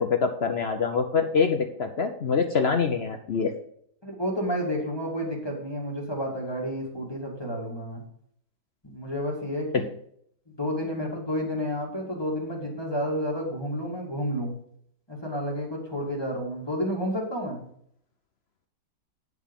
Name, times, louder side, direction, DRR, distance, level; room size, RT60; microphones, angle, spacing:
voice 1, 0.0-3.5, left 5 dB, 55° left, 6 dB, 0.7 m, -25 dB
voice 2, 4.0-8.0 8.8-9.9 10.6-14.6 15.1-17.6, equal, 15° left, -2 dB, 1.9 m, -30 dB
9.5 x 4.7 x 5.2 m, 0.67 s
omnidirectional pair, 1.8 m